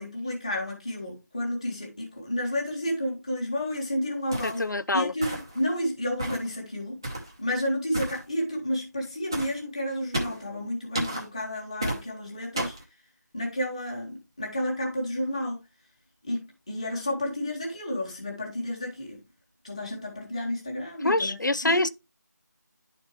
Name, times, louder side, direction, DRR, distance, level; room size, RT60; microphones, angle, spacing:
voice 1, 0.0-4.7 4.9-7.0 7.4-12.7 13.3-15.6 16.2-19.2 19.6-21.4 21.6-21.8, left 1 dB, 20° left, 1.5 m, -31 dB
sound 1, 4.3-4.6 5.2-5.6 6.2-6.5 7.0-7.3 7.9-8.2 9.3-9.5 10.1-10.4 10.9-11.2 11.8-12.0 12.6-12.8, right 1 dB, 15° right, 0.7 m, -32 dB
voice 2, 4.4-5.1 21.0-21.9, left 2 dB, 90° left, 0.6 m, -25 dB
11.0 x 4.4 x 3.0 m
figure-of-eight pair, 175°, 10 cm